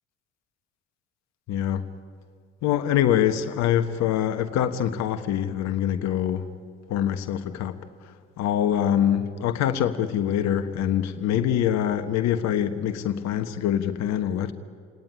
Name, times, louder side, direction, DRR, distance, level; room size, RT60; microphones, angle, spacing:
voice 1, 1.5-1.8 2.6-6.5 6.9-7.8 8.4-14.5, left 10 dB, 50° left, 1.3 m, -24 dB
29.0 x 18.0 x 10.0 m
figure-of-eight pair, 55°, 34 cm